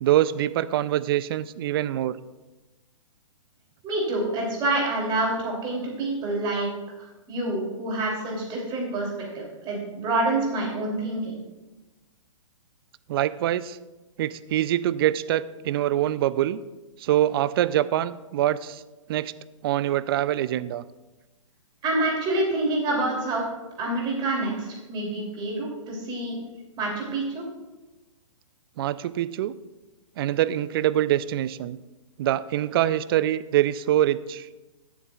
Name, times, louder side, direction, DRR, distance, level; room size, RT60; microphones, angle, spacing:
voice 1, 0.0-2.2 13.1-13.8 14.2-16.6 17.0-18.8 19.1-19.3 19.6-20.8 28.8-29.5 30.2-31.8 32.2-34.5, right 12 dB, 45° right, 16 dB, 0.4 m, -24 dB
voice 2, 3.8-6.7 7.0-9.1 9.3-11.3 21.8-23.4 23.8-26.4 26.8-27.4, right 2 dB, 25° right, -2 dB, 2.9 m, -27 dB
17.0 x 7.1 x 2.4 m, 1.1 s
hypercardioid pair, 125°, 18 cm